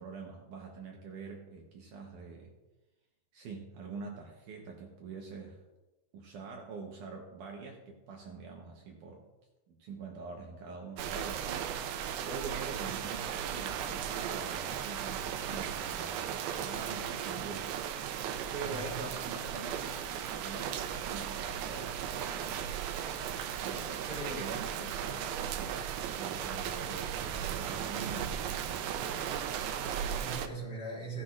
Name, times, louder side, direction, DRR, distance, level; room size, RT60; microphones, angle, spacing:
voice 1, 0.0-2.5 3.3-5.6 6.1-9.3 9.7-18.1 18.5-22.7 23.6-28.9, right 4 dB, 70° right, 0 dB, 2.3 m, -45 dB
sound 1, 11.0-30.5, right 9 dB, 90° right, 2.6 m, -36 dB
voice 2, 18.6-19.0 24.1-24.5 29.7-31.2, right 2 dB, 35° left, -6 dB, 5.1 m, -41 dB
16.5 x 10.0 x 2.5 m, 1.1 s
omnidirectional pair, 4.2 m